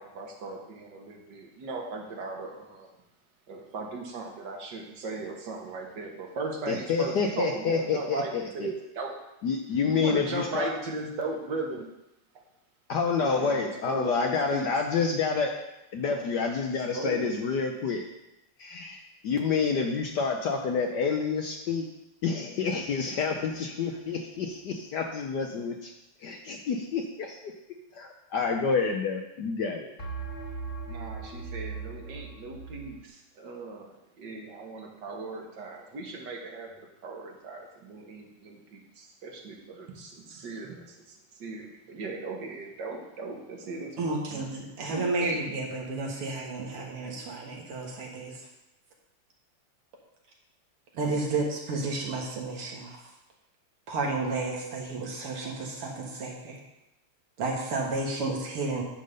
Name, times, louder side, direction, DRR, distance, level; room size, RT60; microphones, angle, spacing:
voice 1, 0.0-2.9 3.5-9.1 9.9-11.9 13.2-14.7 16.0-16.2 16.9-17.3 30.9-36.7 37.0-44.4 44.9-45.4, right 3 dB, 55° right, 1 dB, 1.7 m, -38 dB
voice 2, 6.7-8.7 9.4-10.7 12.9-15.5 15.9-18.0 18.6-21.9 22.2-25.9 26.2-27.5 27.9-29.9, left 5 dB, 65° left, 2 dB, 1.1 m, -28 dB
sound 1, 22.6-23.5 30.0-33.0, right 4 dB, 45° left, 2.2 m, -39 dB
voice 3, 44.0-48.5 50.9-53.1 53.9-56.6 57.4-58.8, right 3 dB, 80° right, -1 dB, 2.5 m, -32 dB
10.5 x 3.7 x 6.6 m, 0.90 s
omnidirectional pair, 2.4 m